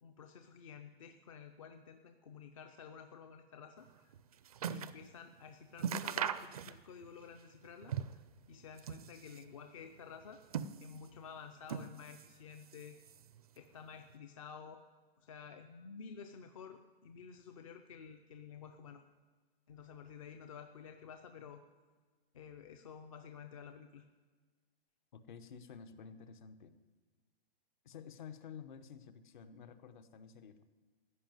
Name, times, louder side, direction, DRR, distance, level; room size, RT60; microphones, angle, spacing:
voice 1, 0.0-4.1 4.7-8.2 8.5-10.4 10.8-13.0 13.5-14.8 15.2-19.0 19.7-21.6 22.3-24.0, left 6 dB, 35° left, 7 dB, 0.5 m, -52 dB
sound 1, 3.9-5.0 5.4-5.5 5.8-7.1 7.4-8.3 8.7-9.5 10.2-11.2 11.6-12.4 12.6-13.4 14.1-14.2, right 8 dB, 40° right, 0.4 m, -40 dB
voice 2, 25.1-26.8 27.8-30.6, left 7 dB, 50° left, 11 dB, 1.0 m, -51 dB
14.5 x 5.6 x 9.2 m, 1.4 s
hypercardioid pair, 165°, 31 cm